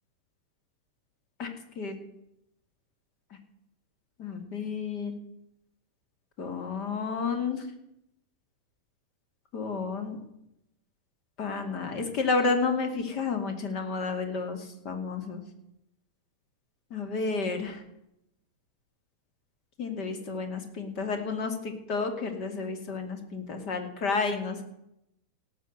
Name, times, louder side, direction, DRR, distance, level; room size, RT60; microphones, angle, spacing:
voice 1, 1.4-2.0 4.2-5.1 6.4-7.7 9.5-10.2 11.4-15.4 16.9-17.8 19.8-24.6, left 4 dB, 40° left, 6 dB, 2.4 m, -31 dB
18.0 x 6.1 x 7.9 m, 0.84 s
figure-of-eight pair, 90°, 0 cm